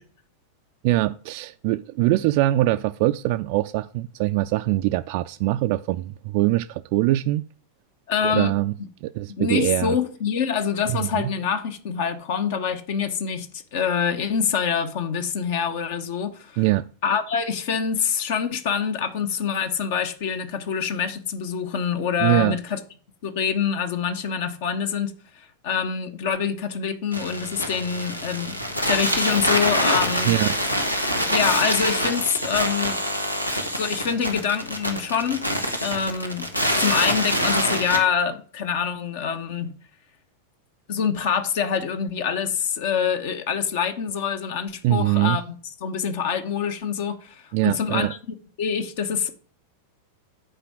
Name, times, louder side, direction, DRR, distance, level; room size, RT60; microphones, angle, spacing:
voice 1, 0.8-7.5 8.2-8.7 9.0-10.0 10.9-11.3 16.6-16.8 22.2-22.6 30.2-30.5 44.8-45.4 47.5-48.1, right 16 dB, 45° right, 0.3 m, -23 dB
voice 2, 8.1-8.5 9.4-16.6 17.0-22.8 23.2-28.6 28.9-30.3 31.3-33.0 33.7-35.5 35.8-36.5 36.7-39.7 40.9-45.5 45.8-48.2 48.6-49.3, left 7 dB, 50° left, 1.1 m, -25 dB
sound 1, 27.1-38.0, equal, 85° left, 1.3 m, -25 dB
8.8 x 4.9 x 6.0 m
figure-of-eight pair, 90°, 0 cm